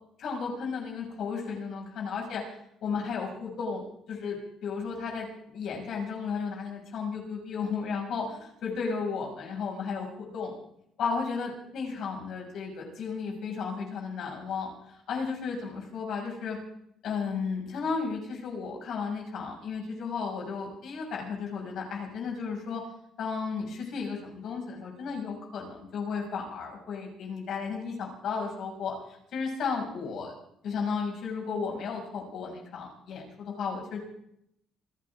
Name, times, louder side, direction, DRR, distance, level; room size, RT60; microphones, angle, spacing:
voice 1, 0.2-2.4 2.8-10.5 11.0-16.6 17.0-22.8 23.2-30.4 30.6-34.0, left 5 dB, 65° left, 0 dB, 6.2 m, -34 dB
27.5 x 12.5 x 3.7 m, 0.73 s
cardioid pair, 120°, 0 cm